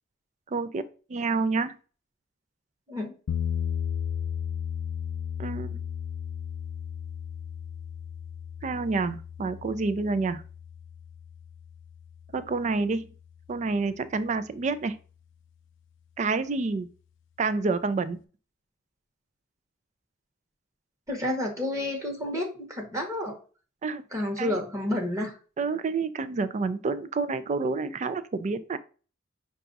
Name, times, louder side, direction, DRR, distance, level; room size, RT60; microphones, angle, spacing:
voice 1, 0.5-0.8 1.1-1.7 5.4-5.8 8.6-10.4 12.3-13.1 13.5-15.0 16.2-16.9 17.4-18.2 23.8-24.0 24.4-24.6 25.6-28.8, right 4 dB, 35° right, 13 dB, 0.4 m, -28 dB
sound 1, 3.3-13.3, left 8 dB, 65° left, 0.4 m, -35 dB
voice 2, 21.1-23.3 24.1-25.3, left 1 dB, 15° right, 1 dB, 1.0 m, -30 dB
5.7 x 2.4 x 3.9 m, 0.37 s
head